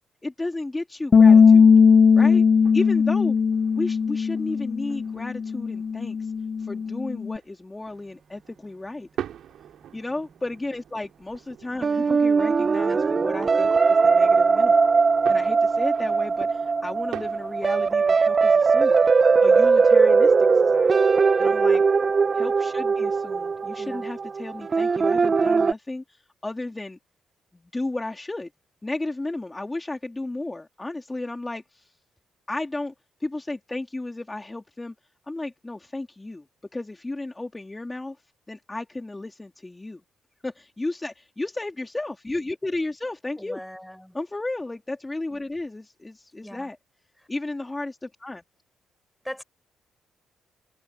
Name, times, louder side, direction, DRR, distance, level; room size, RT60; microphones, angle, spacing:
voice 1, 0.2-1.7 2.1-2.4 2.7-3.4 3.7-6.3 6.6-9.1 9.9-14.8 15.3-19.0 19.4-21.0 21.4-21.8 22.3-27.0 27.5-28.5 28.8-31.9 32.5-32.9 33.2-34.9 35.2-36.5 36.7-38.2 38.5-40.0 40.4-43.6 44.1-46.8 47.3-48.4, left 2 dB, 20° left, 3.0 m, -33 dB
Bass guitar, 1.1-7.4, left 6 dB, 45° left, 0.7 m, -18 dB
sound 1, 1.7-19.7, right 10 dB, 70° right, 4.3 m, -45 dB
voice 2, 11.8-12.1 12.8-13.0 18.9-19.1 23.8-24.0 43.4-44.2 46.4-46.7 47.2-47.3 49.2-49.4, equal, 5° left, 4.7 m, -41 dB
sound 2, 11.8-25.7, right 4 dB, 40° right, 1.0 m, -20 dB
supercardioid pair, 55°, 0 cm